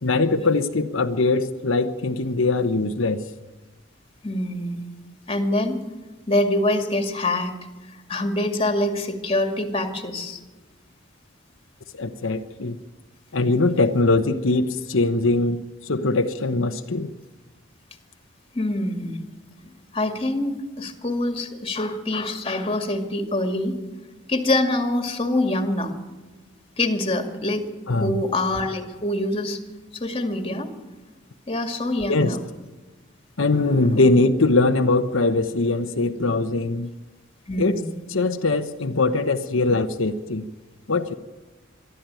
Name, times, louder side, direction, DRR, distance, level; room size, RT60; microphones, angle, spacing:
voice 1, 0.0-3.2 11.9-12.8 13.3-17.1 27.9-28.2 32.1-32.4 33.4-36.9 37.6-37.8 38.1-40.4 40.9-41.1, left 3 dB, 85° left, 7 dB, 1.0 m, -21 dB
voice 2, 4.2-4.8 5.3-5.8 6.3-7.6 8.1-10.4 18.5-19.2 19.6-23.8 24.3-25.9 26.8-29.6 29.9-30.7 31.5-32.4 33.5-34.0 37.5-37.9, left 1 dB, 30° left, 6 dB, 2.3 m, -25 dB
23.5 x 13.0 x 9.1 m, 1.2 s
head